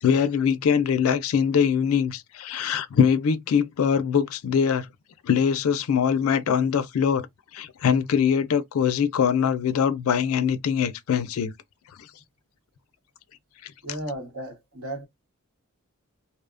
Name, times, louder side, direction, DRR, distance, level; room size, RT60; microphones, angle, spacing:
voice 1, 0.0-4.9 5.2-7.3 7.5-11.5, left 7 dB, 70° left, 0.4 m, -22 dB
voice 2, 13.8-15.1, right 1 dB, 70° right, 1.0 m, -34 dB
2.7 x 2.0 x 2.4 m
head